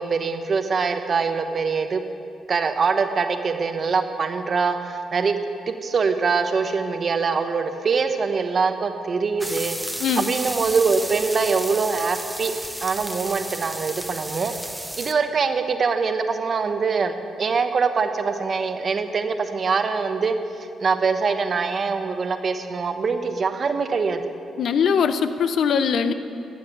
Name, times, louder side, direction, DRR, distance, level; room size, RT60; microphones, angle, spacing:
voice 1, 0.0-2.0 2.5-5.3 5.7-9.7 10.2-12.5 12.8-14.5 15.0-20.4 20.8-24.2 26.0-26.1, right 5 dB, 50° right, 7 dB, 1.0 m, -23 dB
sound 1, 9.4-15.1, right 1 dB, 5° right, 1.0 m, -33 dB
voice 2, 10.0-10.3 24.6-26.1, left 6 dB, 70° left, 11 dB, 0.6 m, -21 dB
13.0 x 7.3 x 8.9 m, 2.5 s
supercardioid pair, 65°, 0 cm